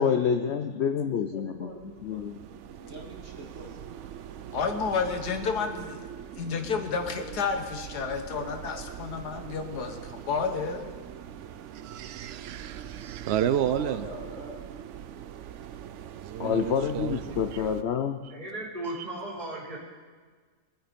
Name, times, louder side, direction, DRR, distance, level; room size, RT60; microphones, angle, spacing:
voice 1, 0.0-1.7 2.0-2.4 16.4-18.2, left 7 dB, 60° left, 7 dB, 0.7 m, -27 dB
voice 2, 0.9-2.4 2.7-4.1 13.6-14.6, right 1 dB, 45° right, -2 dB, 2.9 m, -44 dB
sound 1, 1.5-17.8, right 10 dB, 65° right, 0.8 m, -43 dB
voice 3, 4.5-6.0 6.4-10.9 16.4-16.5, left 5 dB, 90° left, 6 dB, 1.8 m, -31 dB
voice 4, 11.8-14.1 16.2-17.6, right 10 dB, 90° right, 13 dB, 0.5 m, -31 dB
voice 5, 18.3-19.8, right 2 dB, 25° right, -6 dB, 4.8 m, -36 dB
23.5 x 9.0 x 5.2 m, 1.5 s
omnidirectional pair, 1.7 m